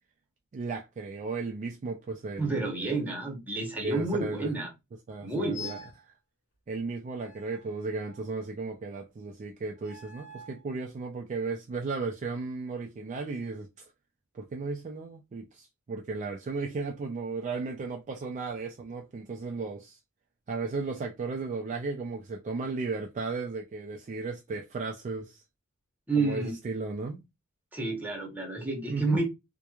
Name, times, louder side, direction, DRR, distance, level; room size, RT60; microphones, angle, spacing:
voice 1, 0.5-3.1 3.8-4.5 5.1-5.8 6.7-13.9 14.3-20.0 20.5-25.4 26.2-27.2 28.9-29.2, right 3 dB, 35° right, 0.3 m, -35 dB
voice 2, 2.4-4.7 5.2-5.8 26.1-26.5 27.7-29.3, right 3 dB, 10° right, 0.8 m, -30 dB
sound 1, 5.5-6.0 7.2-8.4 9.8-10.6, left 3 dB, 70° left, 1.3 m, -46 dB
2.9 x 2.1 x 2.3 m
head